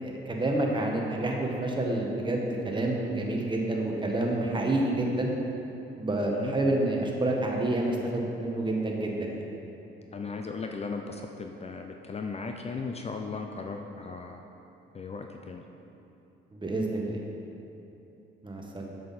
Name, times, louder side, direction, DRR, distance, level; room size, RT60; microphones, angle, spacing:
voice 1, 0.0-5.3 6.0-9.4 16.5-17.2 18.4-18.9, right 2 dB, 25° right, 0 dB, 1.3 m, -28 dB
voice 2, 10.1-14.4 14.9-15.6, left 4 dB, 30° left, 3 dB, 0.5 m, -37 dB
7.7 x 7.5 x 4.2 m, 2.9 s
cardioid pair, 90°, 20 cm